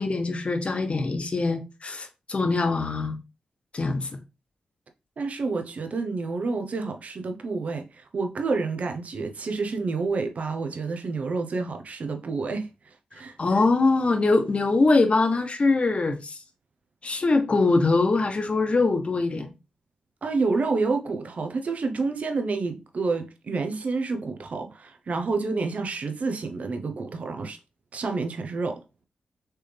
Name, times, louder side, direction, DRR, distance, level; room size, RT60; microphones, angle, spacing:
voice 1, 0.0-3.2 3.7-4.1 13.4-16.4 17.0-19.5, left 3 dB, 45° left, 1.1 m, -23 dB
voice 2, 5.2-13.4 20.2-27.6 27.9-28.8, right 4 dB, 60° right, 0.8 m, -29 dB
4.4 x 3.4 x 3.3 m
cardioid pair, 50°, 3 cm